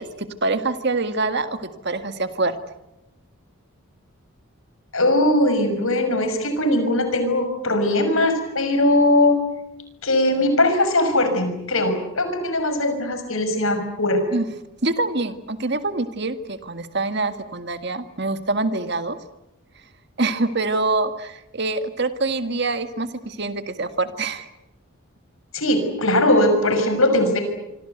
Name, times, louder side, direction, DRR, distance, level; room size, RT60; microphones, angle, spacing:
voice 1, 0.0-2.6 14.3-14.5 14.8-19.2 20.2-24.5, right 3 dB, 50° right, 9 dB, 1.9 m, -25 dB
voice 2, 4.9-9.4 10.0-14.2 25.5-27.4, left 1 dB, 70° left, 8 dB, 6.1 m, -20 dB
26.0 x 25.5 x 8.1 m, 0.90 s
head